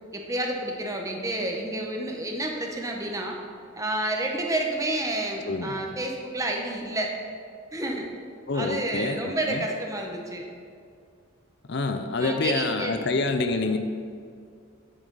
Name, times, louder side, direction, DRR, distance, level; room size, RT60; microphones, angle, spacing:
voice 1, 0.1-3.4 3.7-7.1 7.7-8.1 8.5-10.5 12.2-13.0, right 1 dB, 15° right, 1 dB, 0.9 m, -30 dB
voice 2, 5.5-5.8 8.5-9.7 11.7-13.8, left 3 dB, 55° left, 7 dB, 0.6 m, -27 dB
9.2 x 8.8 x 4.0 m, 2.3 s
head